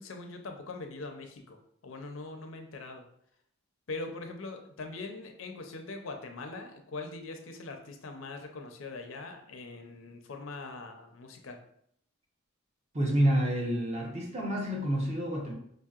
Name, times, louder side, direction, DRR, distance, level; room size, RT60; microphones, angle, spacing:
voice 1, 0.0-3.1 3.9-11.6, left 3 dB, 70° left, 5 dB, 0.5 m, -42 dB
voice 2, 12.9-15.5, right 1 dB, 30° right, 0 dB, 0.7 m, -28 dB
5.0 x 2.7 x 2.4 m, 0.70 s
head